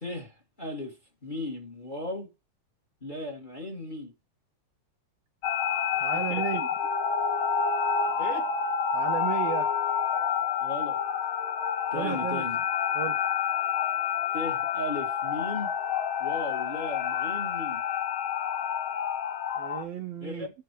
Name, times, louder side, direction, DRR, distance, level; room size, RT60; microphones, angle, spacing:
voice 1, 0.0-2.3 3.0-4.1 6.3-6.4 8.2-8.5 10.6-11.0 11.9-12.6 14.3-15.7 16.2-17.8 20.2-20.5, left 1 dB, 20° left, 1.9 m, -36 dB
sound 1, 5.4-19.8, left 7 dB, 65° left, 1.3 m, -28 dB
voice 2, 6.0-6.7 8.9-9.7 11.9-12.5 12.9-13.2 19.6-20.5, right 10 dB, 75° right, 1.5 m, -33 dB
13.5 x 4.6 x 3.2 m
omnidirectional pair, 3.5 m